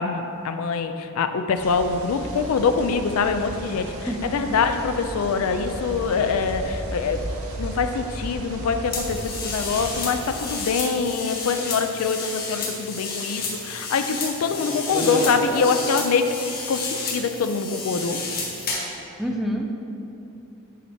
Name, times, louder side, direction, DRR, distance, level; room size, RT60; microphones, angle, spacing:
voice 1, 0.0-7.3 7.6-16.3 16.7-18.2, left 5 dB, 70° left, 8 dB, 0.4 m, -24 dB
sound 1, 1.6-10.5, right 1 dB, 75° right, 0.8 m, -35 dB
sound 2, 8.9-19.0, left 2 dB, 45° left, 1.3 m, -30 dB
voice 2, 19.2-19.7, equal, ahead, 1 dB, 0.5 m, -27 dB
8.3 x 4.5 x 4.2 m, 2.9 s
head